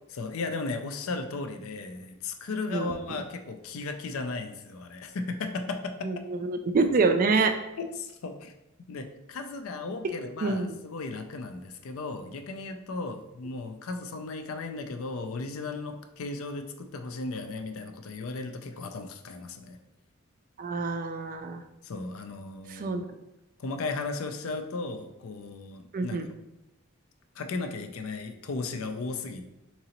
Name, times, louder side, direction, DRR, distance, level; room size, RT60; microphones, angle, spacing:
voice 1, 0.1-6.2 7.8-8.5 8.9-19.8 21.8-23.0 23.6-26.2 27.4-29.4, left 3 dB, 70° left, 7 dB, 0.4 m, -36 dB
voice 2, 6.0-7.5 10.4-10.7 20.6-21.6 22.7-23.0 25.9-26.3, right 4 dB, 40° right, 7 dB, 0.3 m, -26 dB
3.8 x 3.0 x 2.9 m, 0.93 s
head